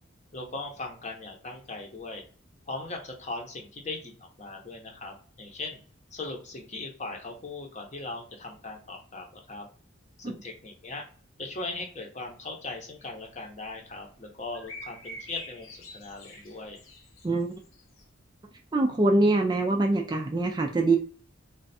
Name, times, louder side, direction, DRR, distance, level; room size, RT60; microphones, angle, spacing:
voice 1, 0.3-2.2 2.7-5.8 6.1-9.7 10.2-11.0 11.4-16.8, left 2 dB, 35° left, 2 dB, 0.8 m, -39 dB
sound 1, 13.0-13.7 14.5-18.0, left 1 dB, 85° left, 0.8 m, -45 dB
voice 2, 18.7-21.0, right 2 dB, 20° right, 3 dB, 0.3 m, -24 dB
3.3 x 2.3 x 4.1 m, 0.43 s
head